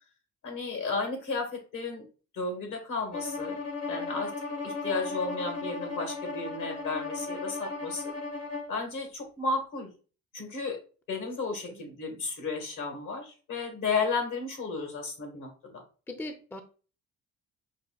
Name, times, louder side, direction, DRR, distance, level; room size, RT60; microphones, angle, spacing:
voice 1, 0.4-2.1 2.3-3.5 3.9-4.3 4.6-8.1 8.7-9.9 10.3-10.8 11.1-15.7, left 4 dB, 80° left, 3 dB, 1.5 m, -33 dB
Bowed string instrument, 3.1-8.7, left 3 dB, 55° left, 0.8 m, -36 dB
voice 2, 11.5-11.8 16.1-16.6, left 2 dB, 5° left, 7 dB, 0.4 m, -40 dB
5.3 x 2.4 x 2.3 m, 0.36 s
cardioid pair, 90°, 30 cm